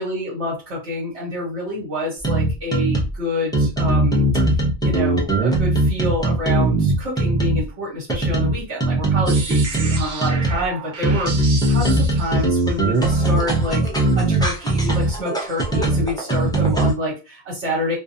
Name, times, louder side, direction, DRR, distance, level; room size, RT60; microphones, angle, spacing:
voice 1, 0.0-4.4 4.8-18.0, left 1 dB, 75° right, -5 dB, 1.3 m, -27 dB
sound 1, 2.2-3.2 3.5-7.7 8.1-10.6 11.0-16.9, right 2 dB, 5° left, 0.3 m, -19 dB
sound 2, 9.3-13.0, right 4 dB, 55° right, 0.6 m, -33 dB
2.3 x 2.3 x 2.6 m, 0.29 s
omnidirectional pair, 1.1 m